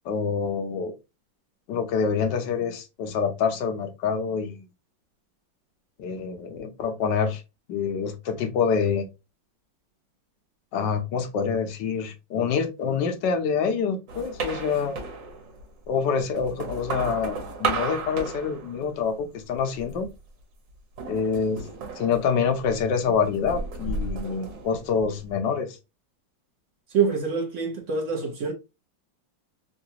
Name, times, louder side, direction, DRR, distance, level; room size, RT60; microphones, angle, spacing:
voice 1, 0.0-0.9 1.7-4.6 6.0-7.4 7.7-9.0 10.7-15.0 15.9-20.1 21.1-21.7 22.0-25.8, left 6 dB, 70° left, 1.3 m, -26 dB
sound 1, 14.1-15.7 16.2-19.2 19.5-20.1 21.0-22.9 23.2-25.3, right 4 dB, 75° right, 1.7 m, -34 dB
voice 2, 26.9-28.5, right 5 dB, 55° right, 0.9 m, -25 dB
3.8 x 2.4 x 2.7 m
omnidirectional pair, 2.0 m